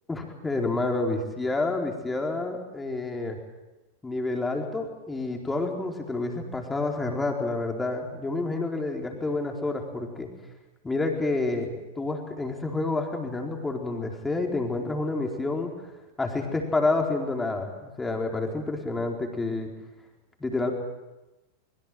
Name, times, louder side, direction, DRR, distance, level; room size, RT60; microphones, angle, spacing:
voice 1, 0.1-3.4 4.0-10.3 10.8-15.7 16.2-19.7 20.4-20.7, left 2 dB, 10° left, 2 dB, 4.3 m, -29 dB
24.5 x 22.5 x 7.8 m, 1.1 s
figure-of-eight pair, 90°, 0 cm